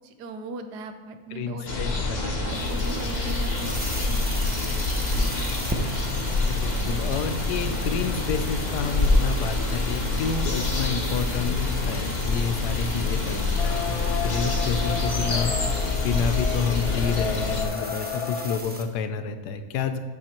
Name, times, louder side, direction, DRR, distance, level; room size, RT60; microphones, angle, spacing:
voice 1, 0.0-1.8 2.1-3.7 4.0-4.7, right 3 dB, 85° right, 8 dB, 1.3 m, -39 dB
voice 2, 1.3-2.5 3.0-3.2 6.5-20.0, left 6 dB, 85° left, 9 dB, 1.3 m, -30 dB
sound 1, 1.7-17.7, left 3 dB, 35° left, 1.0 m, -26 dB
sound 2, 2.4-18.8, equal, 15° right, 0.3 m, -38 dB
sound 3, 13.6-18.6, left 5 dB, 60° left, 0.9 m, -33 dB
9.0 x 6.0 x 4.4 m, 1.3 s
omnidirectional pair, 1.7 m